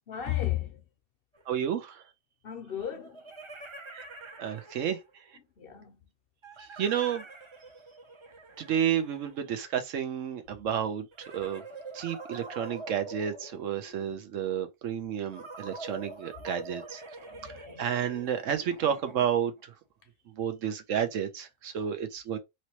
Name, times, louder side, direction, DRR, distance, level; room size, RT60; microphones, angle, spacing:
voice 1, 0.1-0.8 2.4-3.2 5.6-6.0 15.9-16.0 17.2-18.1, left 12 dB, 55° left, 0.7 m, -35 dB
sound 1, 1.3-1.4 2.8-5.2 6.4-9.9 11.1-14.2 15.3-19.6, right 2 dB, 30° right, 0.6 m, -45 dB
voice 2, 1.5-2.0 3.9-4.0 4.4-5.0 6.6-7.2 8.6-11.1 11.3-11.6 11.9-17.0 17.4-17.5 17.8-19.5 20.4-22.4, right 9 dB, 80° right, 1.1 m, -31 dB
3.1 x 2.9 x 2.8 m
omnidirectional pair, 1.3 m